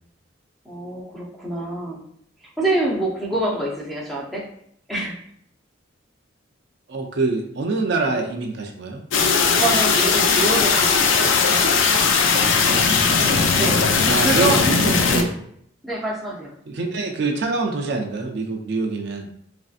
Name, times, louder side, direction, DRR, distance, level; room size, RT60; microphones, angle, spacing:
voice 1, 0.7-2.0 2.6-4.4 4.9-5.2 9.6-11.7 13.6-14.6 15.8-16.5, right 2 dB, ahead, -4 dB, 0.5 m, -26 dB
voice 2, 6.9-9.0 12.5-12.9 13.1-13.5 14.0-15.4 16.7-19.3, right 3 dB, 55° right, 2 dB, 0.4 m, -25 dB
sound 1, 9.1-15.2, left 5 dB, 75° left, 0.4 m, -18 dB
3.2 x 2.6 x 2.4 m, 0.69 s
head